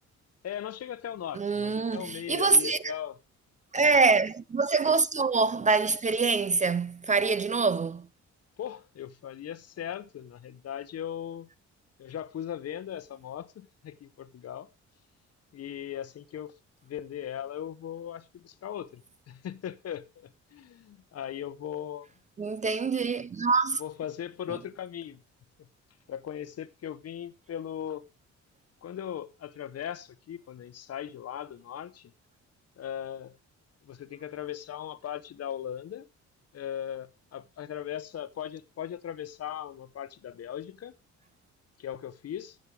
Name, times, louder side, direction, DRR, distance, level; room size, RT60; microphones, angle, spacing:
voice 1, 0.4-3.2 3.8-4.0 8.6-11.5 12.0-14.7 15.5-16.5 16.8-22.1 23.8-25.2 25.6-25.7 26.1-28.1 28.8-32.1 32.8-33.4 33.8-36.1 36.5-40.9 41.8-42.6, left 10 dB, 55° left, 0.9 m, -38 dB
voice 2, 1.4-2.9 3.7-8.1 22.4-23.8, right 4 dB, 25° right, 0.4 m, -25 dB
15.0 x 6.5 x 3.3 m
cardioid pair, 90°, 30 cm